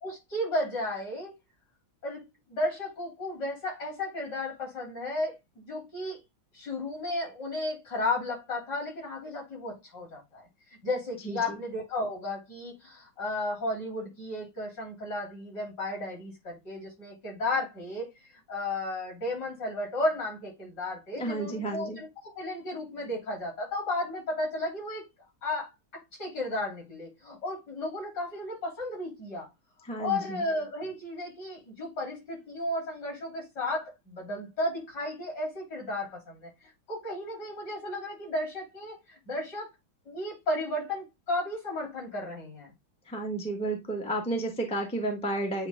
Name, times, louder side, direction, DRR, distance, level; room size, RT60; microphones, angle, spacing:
voice 1, 0.0-1.3 2.0-6.2 6.5-10.5 10.8-18.1 18.5-25.1 25.4-29.5 30.0-36.5 36.9-39.7 40.1-42.7, left 1 dB, 55° left, 3.8 m, -34 dB
voice 2, 11.2-11.6 21.1-22.0 29.8-30.4 43.1-45.7, right 2 dB, 5° left, 1.1 m, -32 dB
8.7 x 3.2 x 3.4 m
omnidirectional pair, 2.2 m